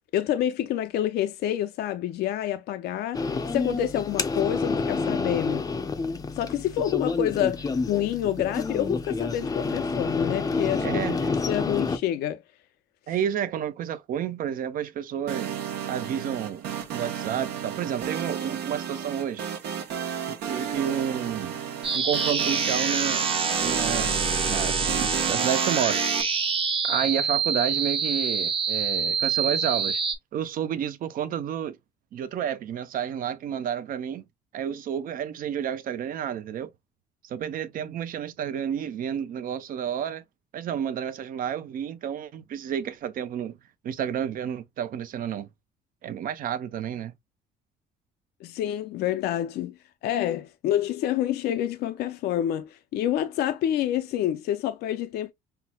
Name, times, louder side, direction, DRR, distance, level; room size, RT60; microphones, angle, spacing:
voice 1, 0.1-5.6 6.3-11.0 11.5-12.4 48.4-55.3, left 11 dB, 70° left, 0.5 m, -28 dB
sound 1, 3.1-12.0, left 4 dB, 20° left, 0.5 m, -28 dB
voice 2, 10.8-11.3 13.1-15.6 15.9-16.6 16.9-19.4 20.3-21.6 21.9-24.1 24.5-26.0 26.8-30.0 30.3-31.8 32.1-34.2 34.5-36.7 37.2-40.2 40.5-43.6 43.8-45.5 46.0-47.1, right 9 dB, 55° right, 0.6 m, -30 dB
sound 2, 15.3-26.2, right 8 dB, 75° right, 1.0 m, -33 dB
sound 3, 21.8-30.1, right 5 dB, 35° right, 0.9 m, -26 dB
5.7 x 2.1 x 2.2 m
cardioid pair, 110°, 17 cm